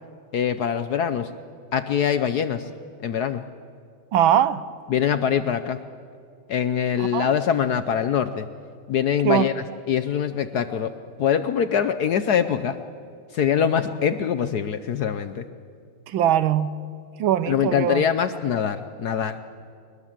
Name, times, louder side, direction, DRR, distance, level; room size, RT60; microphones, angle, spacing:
voice 1, 0.3-1.3 1.7-2.7 3.0-3.4 4.9-5.8 6.5-8.5 8.9-9.5 9.9-10.9 11.2-12.8 13.3-15.4 17.5-19.4, left 8 dB, 65° left, 11 dB, 1.0 m, -23 dB
voice 2, 4.1-4.7 7.1-7.3 9.2-9.5 16.1-16.7 17.2-18.0, right 10 dB, 75° right, 15 dB, 1.5 m, -21 dB
22.0 x 21.0 x 7.4 m, 2.5 s
omnidirectional pair, 2.3 m